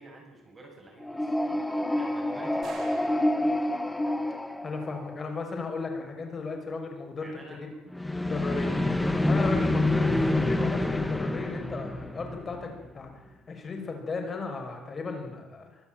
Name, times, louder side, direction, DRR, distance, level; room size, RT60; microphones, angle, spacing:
voice 1, 0.0-1.4 1.9-3.2 7.2-7.8 10.1-10.4, right 1 dB, 15° right, 0 dB, 7.8 m, -49 dB
sound 1, 1.0-5.3 7.9-12.9, left 1 dB, 5° left, 1.7 m, -27 dB
sound 2, 2.6-4.1, right 5 dB, 45° right, 5.6 m, -50 dB
voice 2, 4.6-7.3 8.2-8.7 9.3-13.1 13.5-15.7, left 4 dB, 30° left, 3 dB, 6.0 m, -35 dB
24.5 x 14.0 x 9.1 m, 0.98 s
cardioid pair, 150°, 0 cm